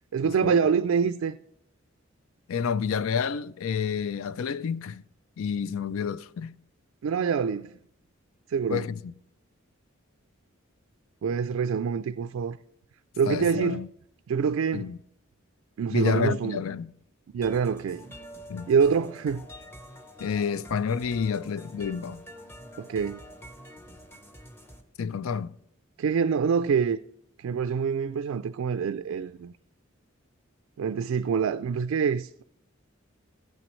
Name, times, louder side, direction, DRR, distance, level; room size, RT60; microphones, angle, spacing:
voice 1, 0.1-1.4 7.0-7.7 8.5-8.9 11.2-12.6 13.2-13.9 14.3-14.9 15.8-16.6 17.3-18.1 18.7-19.5 22.8-23.2 26.0-27.0 27.4-29.5 30.8-32.4, right 6 dB, 75° right, 0.3 m, -26 dB
voice 2, 2.5-5.0 5.4-6.5 8.7-9.1 13.2-13.9 14.7-15.0 15.9-16.9 18.5-18.7 20.2-22.2 25.0-25.5, left 6 dB, 80° left, 0.4 m, -29 dB
sound 1, 17.4-24.8, equal, 10° left, 0.9 m, -46 dB
15.5 x 8.9 x 3.1 m
head